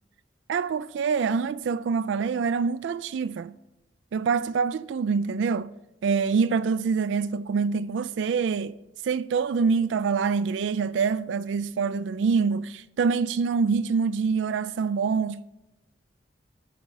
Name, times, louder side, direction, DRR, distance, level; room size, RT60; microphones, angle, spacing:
voice 1, 0.5-3.5 4.1-5.7 6.0-8.7 9.0-15.4, right 5 dB, 80° right, 0.3 m, -25 dB
12.5 x 5.1 x 5.3 m
head